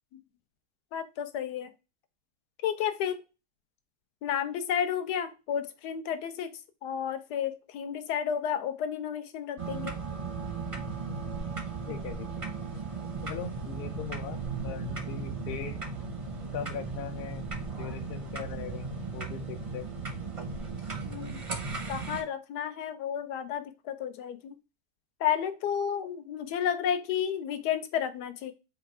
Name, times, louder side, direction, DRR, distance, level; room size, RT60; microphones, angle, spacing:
voice 1, 0.9-1.7 2.6-3.2 4.2-6.5 6.8-10.0 21.0-21.4 21.9-24.5 25.2-28.5, left 8 dB, 85° left, 9 dB, 1.3 m, -32 dB
sound 1, 9.6-22.2, right 4 dB, 45° right, 0.4 m, -36 dB
voice 2, 11.9-12.5 13.2-15.8 16.5-17.5 17.8-19.9, left 9 dB, 65° left, 8 dB, 0.6 m, -40 dB
4.5 x 2.4 x 4.5 m, 0.28 s
omnidirectional pair, 1.7 m